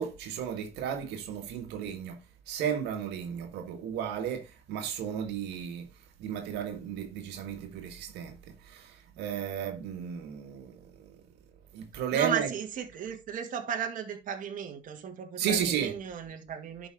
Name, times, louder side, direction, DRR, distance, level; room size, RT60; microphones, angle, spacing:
voice 1, 0.0-2.2 2.5-5.9 6.2-8.4 8.7-11.1 11.7-12.5 15.4-15.9, right 8 dB, 85° right, 1.7 m, -33 dB
voice 2, 12.1-16.9, right 8 dB, 50° right, 2.0 m, -35 dB
11.5 x 5.2 x 3.7 m
cardioid pair, 110°, 17 cm